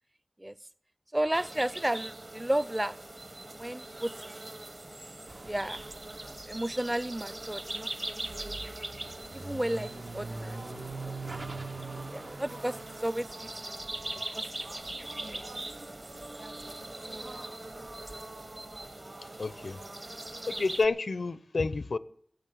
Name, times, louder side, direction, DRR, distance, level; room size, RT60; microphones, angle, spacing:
voice 1, 1.1-3.0 3.6-4.1 4.4-4.5 5.5-5.9 6.2-7.9 8.4-8.7 9.3-10.6 11.0-11.4 12.1-13.5 14.3-14.4 15.2-15.4 16.4-17.4, right 1 dB, 15° right, 0.5 m, -33 dB
sound 1, 1.3-20.9, right 1 dB, 40° right, 0.9 m, -42 dB
sound 2, 5.3-16.3 16.5-18.9, right 3 dB, 85° right, 1.8 m, -44 dB
sound 3, 10.2-20.6, right 2 dB, 55° right, 2.5 m, -50 dB
voice 2, 19.4-19.8 20.5-22.0, left 3 dB, 80° left, 0.6 m, -29 dB
17.0 x 6.9 x 8.4 m
wide cardioid pair, 75°, 0 cm